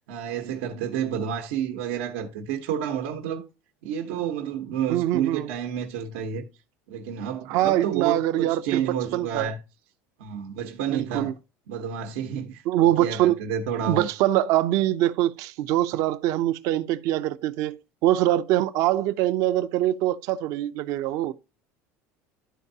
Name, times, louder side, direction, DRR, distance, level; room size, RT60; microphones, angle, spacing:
voice 1, 0.1-3.5 3.8-6.5 6.9-9.6 10.2-11.3 11.7-12.6 13.0-14.1, right 8 dB, 85° right, 1.2 m, -30 dB
voice 2, 4.9-5.5 7.5-8.8 9.1-9.5 10.9-11.3 12.7-13.4 13.9-21.3, right 13 dB, 60° right, 0.6 m, -23 dB
12.5 x 4.6 x 2.8 m
cardioid pair, 150°, 6 cm